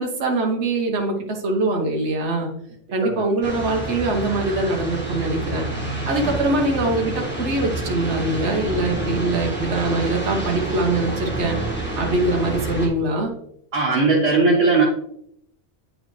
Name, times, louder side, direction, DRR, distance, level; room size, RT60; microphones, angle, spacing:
voice 1, 0.0-2.5 2.9-5.6 6.1-11.6 12.0-13.3, right 2 dB, 70° right, 1 dB, 1.3 m, -23 dB
sound 1, 3.4-12.9, right 2 dB, 10° left, 1.6 m, -28 dB
voice 2, 13.7-14.8, right 3 dB, 90° right, -4 dB, 1.6 m, -18 dB
9.1 x 4.7 x 3.2 m, 0.70 s
omnidirectional pair, 1.2 m